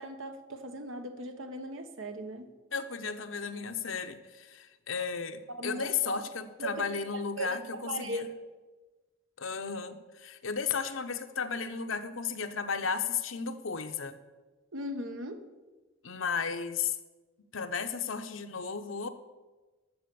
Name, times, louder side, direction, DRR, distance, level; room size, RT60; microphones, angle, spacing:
voice 1, 0.0-2.5 5.5-6.2 6.6-6.7 7.4-7.6 7.9-8.3 14.7-15.4, right 1 dB, 80° right, 7 dB, 1.3 m, -38 dB
voice 2, 2.7-8.3 9.4-14.2 16.0-17.0 17.5-19.1, left 6 dB, 75° left, 8 dB, 0.9 m, -34 dB
12.5 x 7.4 x 7.0 m, 1.2 s
head